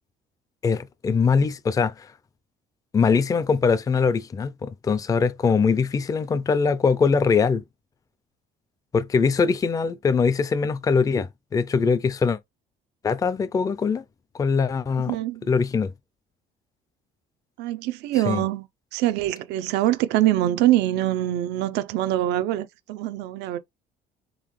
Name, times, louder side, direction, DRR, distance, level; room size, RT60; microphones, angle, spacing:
voice 1, 0.6-2.1 2.9-7.6 8.9-12.4 13.0-14.0 14.4-15.2 15.5-15.9 18.3-18.4, left 5 dB, 20° left, 0.4 m, -22 dB
voice 2, 15.0-15.5 17.6-23.6, right 14 dB, 90° right, 0.6 m, -24 dB
3.9 x 3.6 x 3.1 m
cardioid pair, 110°, 17 cm